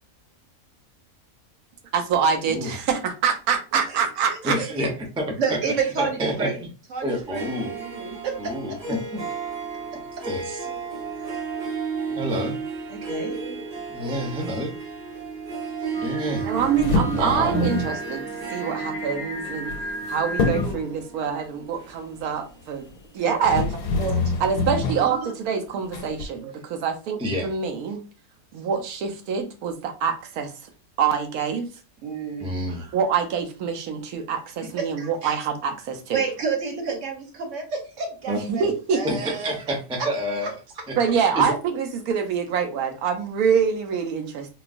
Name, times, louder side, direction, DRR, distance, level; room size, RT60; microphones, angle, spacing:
voice 1, 1.9-4.6 16.4-18.2 18.5-19.7 20.1-22.9 23.1-23.7 24.4-28.0 28.5-30.5 31.0-31.7 32.9-36.2 38.3-39.0 41.0-44.5, right 7 dB, 90° right, 1.1 m, -25 dB
voice 2, 3.9-4.4 5.4-6.6 6.9-8.5 10.2-10.3 10.7-11.4 12.1-12.4 12.9-14.1 23.2-23.6 24.0-24.3 25.2-25.3 26.3-26.6 32.0-33.0 34.8-35.4 36.1-38.7 38.9-39.5 40.0-40.1, right 5 dB, 60° right, 1.2 m, -31 dB
voice 3, 4.4-5.3 6.0-6.6 7.0-7.7 8.4-9.4 10.2-10.7 12.2-12.6 13.9-14.7 16.0-16.5 17.1-17.6 27.2-27.5 32.4-32.8 38.3-38.4 39.0-40.5 40.9-41.5, equal, 10° right, 0.3 m, -28 dB
Harp, 7.1-22.5, right 5 dB, 35° right, 1.2 m, -34 dB
Singing, 15.9-21.0, left 1 dB, 50° left, 0.5 m, -36 dB
sound 1, 16.6-18.0 19.5-20.1 20.4-20.9 22.9-23.0 23.4-25.1 25.9-26.3, left 3 dB, 90° left, 1.1 m, -25 dB
3.8 x 2.3 x 2.5 m
omnidirectional pair, 1.5 m